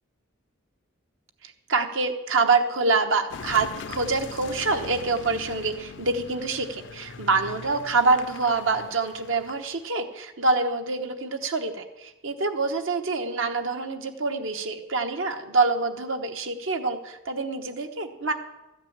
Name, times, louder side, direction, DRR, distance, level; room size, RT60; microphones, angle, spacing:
voice 1, 1.4-18.3, right 3 dB, 70° right, 6 dB, 1.1 m, -26 dB
Car passing by / Engine, 3.3-9.9, left 5 dB, 60° left, 0.5 m, -41 dB
13.5 x 5.9 x 8.8 m, 1.0 s
head